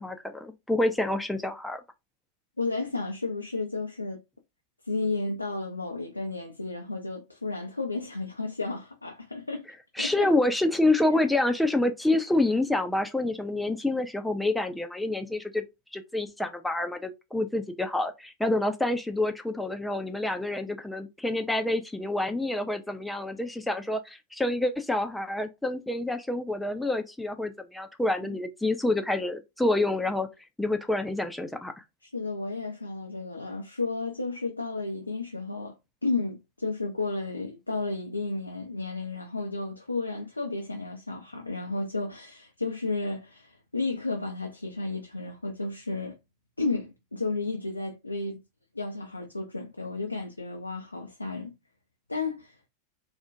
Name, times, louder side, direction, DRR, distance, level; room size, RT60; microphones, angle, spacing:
voice 1, 0.0-1.8 10.0-15.6 15.9-30.3 30.6-31.8, left 2 dB, 5° left, 0.4 m, -27 dB
voice 2, 2.6-4.2 4.8-9.7 10.0-10.3 28.2-28.4 32.0-46.2 46.6-48.4 48.7-51.5 52.1-52.6, left 3 dB, 85° left, 0.4 m, -32 dB
2.4 x 2.1 x 2.5 m
figure-of-eight pair, 90°, 0 cm